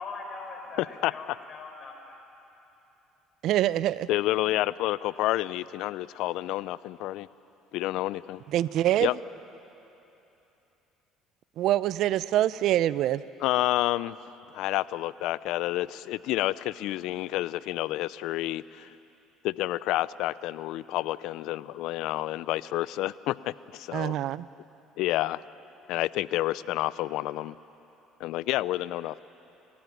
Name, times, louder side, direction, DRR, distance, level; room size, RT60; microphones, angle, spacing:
voice 1, 0.0-2.2, left 3 dB, 40° left, 2 dB, 6.0 m, -41 dB
voice 2, 3.4-4.1 8.5-9.1 11.6-13.2 23.9-24.5, right 13 dB, 65° right, 17 dB, 0.6 m, -25 dB
voice 3, 4.1-7.3 7.7-8.4 9.0-9.1 13.4-14.2 14.5-19.0 19.4-24.1 25.0-25.4 25.9-27.6 28.2-29.2, left 16 dB, 70° left, 19 dB, 0.5 m, -29 dB
29.5 x 15.0 x 9.4 m, 3.0 s
supercardioid pair, 75°, 0 cm